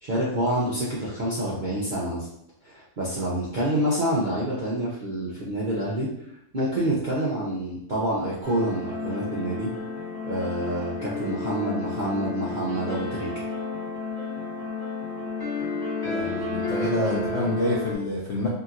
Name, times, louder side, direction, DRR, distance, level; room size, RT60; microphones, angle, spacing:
voice 1, 0.0-2.3 2.6-9.7 10.2-13.4, right 1 dB, 75° right, -8 dB, 0.4 m, -27 dB
sound 1, 8.4-18.0, left 3 dB, 20° left, 0.7 m, -31 dB
voice 2, 16.0-18.5, left 2 dB, 65° left, -5 dB, 0.7 m, -27 dB
2.8 x 2.8 x 2.4 m, 0.75 s
omnidirectional pair, 1.7 m